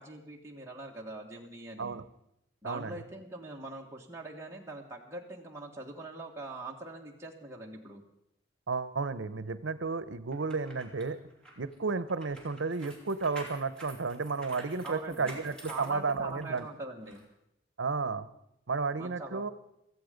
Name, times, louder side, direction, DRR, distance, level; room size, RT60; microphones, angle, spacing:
voice 1, 0.0-2.0 2.6-8.0 14.8-15.4 15.7-17.3 19.0-19.4, right 2 dB, 15° right, -1 dB, 1.6 m, -43 dB
voice 2, 2.6-3.0 8.7-11.2 11.6-16.7 17.8-18.3 18.7-19.5, right 4 dB, 85° right, 14 dB, 0.8 m, -32 dB
sound 1, 10.3-16.6 17.1-17.2, right 1 dB, 5° left, 2.6 m, -49 dB
16.5 x 14.5 x 5.2 m, 0.80 s
head